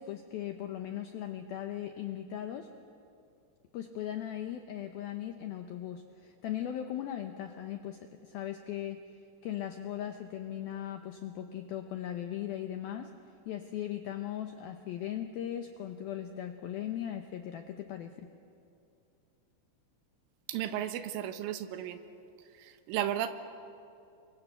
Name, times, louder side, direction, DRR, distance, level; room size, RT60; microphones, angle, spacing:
voice 1, 0.0-2.7 3.7-9.0 9.4-13.1 13.5-18.3, left 11 dB, 85° left, 6 dB, 2.1 m, -38 dB
voice 2, 20.5-22.0 22.5-23.3, right 11 dB, 85° right, 9 dB, 3.7 m, -34 dB
29.5 x 24.0 x 8.1 m, 2.6 s
omnidirectional pair, 5.6 m